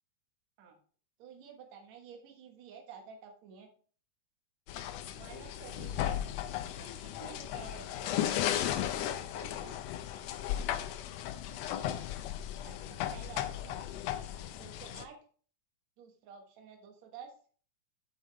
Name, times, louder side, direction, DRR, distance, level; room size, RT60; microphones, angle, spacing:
voice 1, 1.2-3.7 5.2-6.2 6.8-8.2 9.1-9.8 12.6-13.9 14.6-15.2 16.0-17.3, right 6 dB, 60° right, 2 dB, 2.6 m, -51 dB
sound 1, 4.7-15.0, left 11 dB, 85° left, 1.5 m, -36 dB
8.5 x 7.3 x 3.4 m, 0.43 s
omnidirectional pair, 3.7 m